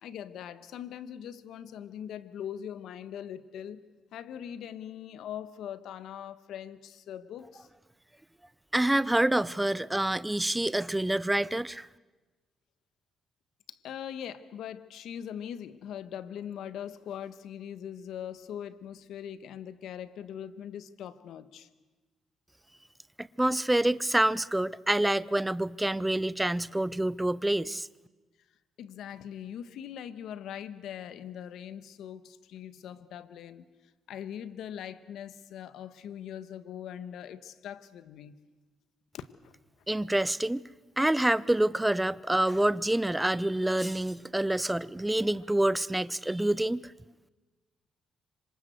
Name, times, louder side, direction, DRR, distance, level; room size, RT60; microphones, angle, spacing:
voice 1, 0.0-3.8 4.1-7.7 13.7-21.7 28.8-33.6 34.1-38.4 39.1-39.5, left 9 dB, 80° left, 1.5 m, -41 dB
voice 2, 8.7-11.9 23.2-27.9 39.9-40.6 41.0-46.9, right 1 dB, 10° right, 0.8 m, -27 dB
26.5 x 25.5 x 8.0 m
cardioid pair, 90°, 0 cm